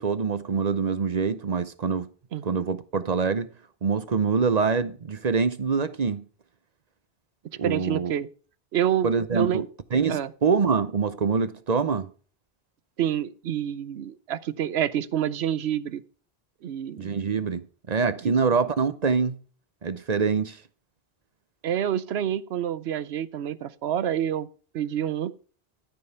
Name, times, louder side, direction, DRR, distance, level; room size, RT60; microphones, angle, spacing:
voice 1, 0.0-2.1 2.4-3.5 3.8-6.2 7.6-8.1 9.0-9.6 9.9-12.1 17.0-19.4 19.8-20.6, right 5 dB, 45° right, 0.8 m, -25 dB
voice 2, 7.6-8.3 8.7-9.7 10.1-10.3 13.0-16.0 16.6-17.2 18.2-18.3 21.6-24.5 24.7-25.4, right 10 dB, 90° right, 1.0 m, -27 dB
13.5 x 5.4 x 5.7 m
omnidirectional pair, 1.0 m